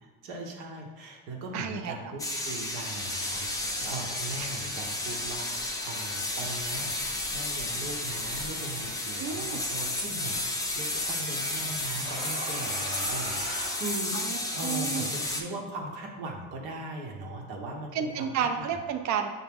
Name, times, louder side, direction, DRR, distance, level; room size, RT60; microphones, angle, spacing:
voice 1, 0.0-7.0 7.3-14.1 14.5-18.7, right 2 dB, 75° right, 0 dB, 1.0 m, -39 dB
voice 2, 1.5-2.1 4.4-4.5 9.2-9.6 14.1-15.1 17.9-19.3, right 7 dB, 50° right, 6 dB, 0.5 m, -31 dB
sound 1, 2.2-15.4, left 2 dB, 10° left, 0.5 m, -32 dB
sound 2, 12.0-14.6, right 2 dB, 20° right, 0.8 m, -40 dB
6.0 x 2.1 x 3.5 m, 1.4 s
supercardioid pair, 85°, 38 cm